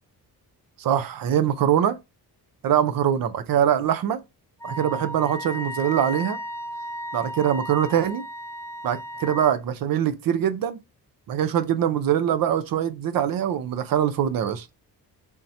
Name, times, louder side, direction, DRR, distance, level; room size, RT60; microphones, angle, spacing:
voice 1, 0.8-2.0 2.6-4.2 4.6-6.4 7.1-8.2 8.8-10.8 11.3-14.7, right 9 dB, 60° right, 0.6 m, -23 dB
Wind instrument woodwind instrument, 4.6-9.5, equal, 5° left, 0.6 m, -35 dB
3.6 x 2.8 x 4.2 m
wide cardioid pair, 175°, 40 cm